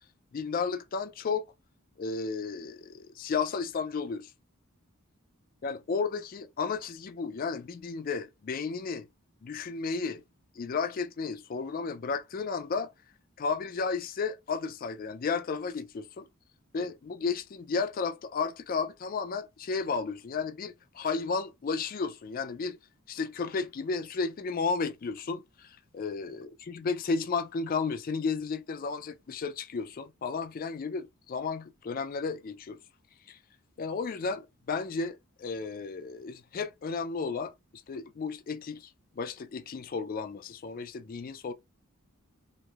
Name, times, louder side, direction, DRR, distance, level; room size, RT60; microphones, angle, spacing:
voice 1, 0.3-1.5 2.0-4.3 5.6-9.1 9.4-10.2 10.6-12.9 13.4-16.3 16.7-22.8 23.1-32.8 33.3-33.4 33.8-37.5 37.9-38.9 39.2-41.5, left 4 dB, 40° left, 0.3 m, -33 dB
3.0 x 2.6 x 2.3 m
head